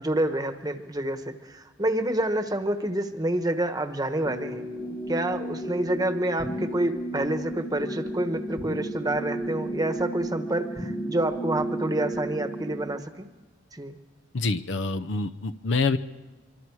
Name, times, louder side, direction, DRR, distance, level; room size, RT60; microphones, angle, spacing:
voice 1, 0.0-4.7 5.1-13.3 13.7-14.0, right 1 dB, 20° right, 8 dB, 1.2 m, -28 dB
sound 1, 4.2-12.9, right 1 dB, 25° left, 1.6 m, -33 dB
voice 2, 14.3-16.0, left 3 dB, 65° left, 12 dB, 0.7 m, -26 dB
25.0 x 24.5 x 4.8 m, 1.3 s
head